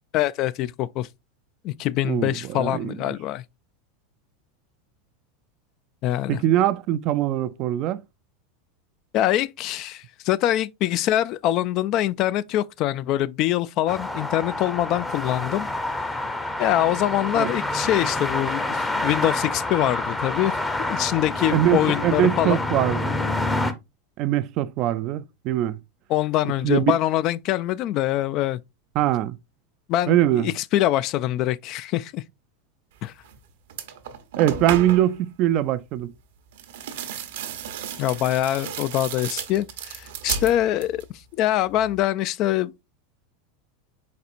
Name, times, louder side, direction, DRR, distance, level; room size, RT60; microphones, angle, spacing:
voice 1, 0.1-1.1 1.6-3.4 6.0-6.4 9.1-15.7 16.6-20.6 20.9-22.6 26.1-28.6 29.9-30.2 30.4-32.2 33.0-33.1 38.0-41.0 41.4-42.7, left 13 dB, 50° left, 0.3 m, -24 dB
voice 2, 2.0-3.0 6.3-8.0 17.4-17.5 21.5-23.2 24.2-25.8 26.6-26.9 29.0-29.4 30.1-30.5 34.4-36.1, right 12 dB, 50° right, 0.3 m, -22 dB
sound 1, 13.9-23.7, left 2 dB, 10° left, 0.7 m, -27 dB
sound 2, 33.2-33.4 33.7-35.2 36.5-41.1 41.4-42.0, right 8 dB, 75° right, 0.8 m, -33 dB
4.2 x 4.1 x 2.5 m
hypercardioid pair, 105°, 0 cm